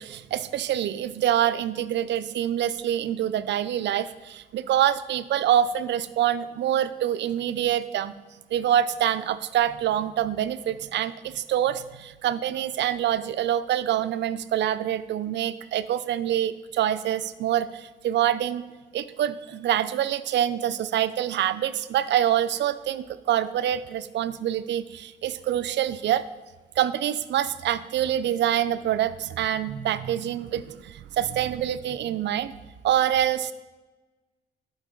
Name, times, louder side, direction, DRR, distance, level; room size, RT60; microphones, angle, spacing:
voice 1, 0.0-8.1 8.5-18.6 18.9-26.3 26.8-32.5 32.8-33.5, right 11 dB, 65° right, 13 dB, 0.5 m, -26 dB
11.0 x 5.1 x 3.8 m, 1.2 s
cardioid pair, 90°, 20 cm